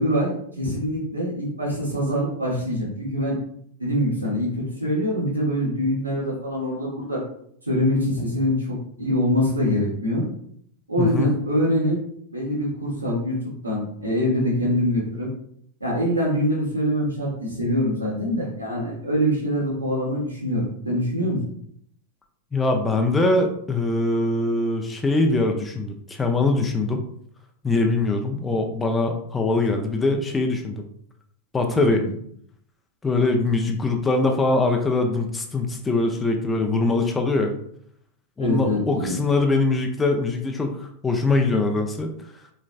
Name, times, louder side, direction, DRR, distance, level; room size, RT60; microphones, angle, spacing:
voice 1, 0.0-3.4 3.8-7.2 7.7-10.2 10.9-12.0 12.3-15.3 15.8-21.4 31.6-32.1 33.6-33.8 38.4-39.2, equal, 85° right, -5 dB, 1.4 m, -24 dB
voice 2, 11.0-11.3 22.5-27.0 27.6-30.8 31.5-32.0 33.0-37.5 38.4-42.1, left 2 dB, 15° left, 3 dB, 0.5 m, -22 dB
4.0 x 3.2 x 2.4 m, 0.66 s
figure-of-eight pair, 90°, 0 cm